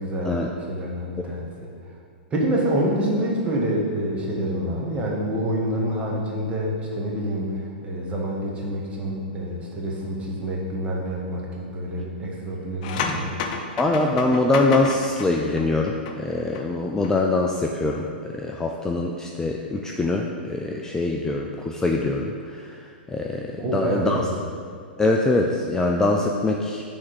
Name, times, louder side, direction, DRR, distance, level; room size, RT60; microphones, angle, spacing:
voice 1, 0.0-1.5 2.3-7.5 7.8-13.3 23.6-24.3, right 1 dB, 20° right, -3 dB, 1.4 m, -27 dB
sound 1, 12.8-16.7 16.9-17.1, left 5 dB, 50° left, 0.6 m, -31 dB
voice 2, 13.8-24.3 25.0-26.8, left 2 dB, 10° left, 1 dB, 0.4 m, -23 dB
6.2 x 3.5 x 5.8 m, 2.2 s
hypercardioid pair, 110°, 6 cm